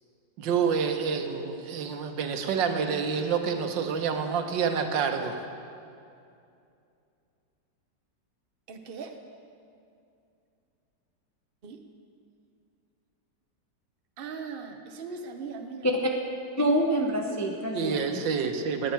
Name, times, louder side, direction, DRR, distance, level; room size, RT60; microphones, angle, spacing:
voice 1, 0.4-5.4 17.7-18.9, right 6 dB, 85° right, 5 dB, 1.6 m, -28 dB
voice 2, 8.7-9.2 11.6-11.8 14.2-15.9, right 5 dB, 45° right, 5 dB, 0.8 m, -39 dB
voice 3, 16.6-18.2 18.6-18.7, equal, 20° left, 1 dB, 0.4 m, -26 dB
17.5 x 9.6 x 4.5 m, 2.5 s
omnidirectional pair, 1.9 m